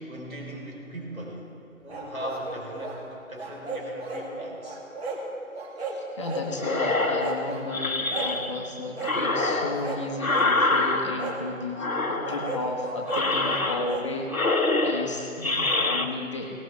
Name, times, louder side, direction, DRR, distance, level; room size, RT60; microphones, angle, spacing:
voice 1, 0.0-1.4 1.8-4.8 7.4-7.5, equal, 80° right, -1 dB, 4.1 m, -39 dB
sound 1, 1.9-3.0 3.4-4.3 4.6-5.2 5.5-6.5 6.8-7.6 8.1-8.4 8.9-9.2 9.7-10.5 11.2-11.4 12.2-14.1, right 3 dB, 50° right, 2.3 m, -35 dB
voice 2, 5.9-16.5, left 3 dB, 20° left, 0 dB, 1.0 m, -34 dB
sound 2, 6.6-8.7 9.0-11.4 11.8-12.7 13.1-14.0 14.3-16.1, left 2 dB, 90° left, 1.2 m, -26 dB
18.5 x 18.0 x 3.3 m, 2.6 s
figure-of-eight pair, 150°, 41 cm